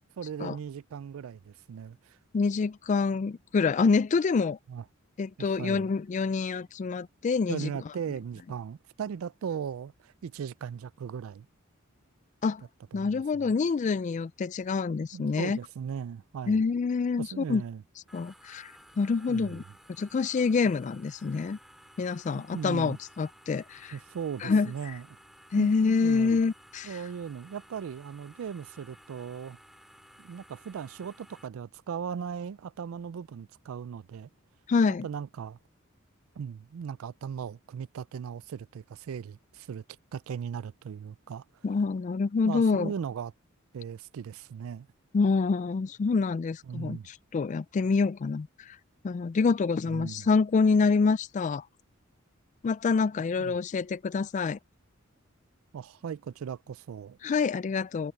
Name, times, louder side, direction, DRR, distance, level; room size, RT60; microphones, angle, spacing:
voice 1, 0.2-2.2 4.7-4.8 5.4-5.9 7.5-11.5 12.9-13.5 15.1-16.6 17.2-17.8 19.3-19.6 22.3-23.0 23.9-25.1 25.6-25.7 26.0-26.4 26.8-29.6 30.2-34.3 35.0-35.6 36.4-39.8 40.1-41.4 42.4-43.3 43.7-44.9 46.7-47.1 49.9-50.3 53.4-53.5 55.7-57.2, right 7 dB, 90° right, 0.4 m, -38 dB
voice 2, 2.3-4.6 5.2-7.7 12.4-12.6 12.9-15.6 16.5-17.6 18.1-18.7 19.0-19.6 20.0-21.6 22.0-23.9 24.4-24.7 25.5-27.0 34.7-35.1 41.6-42.9 45.1-48.8 49.0-51.6 52.6-54.6 57.2-58.1, left 4 dB, 35° left, 0.3 m, -26 dB
sound 1, 18.1-31.5, equal, ahead, 4.4 m, -56 dB
head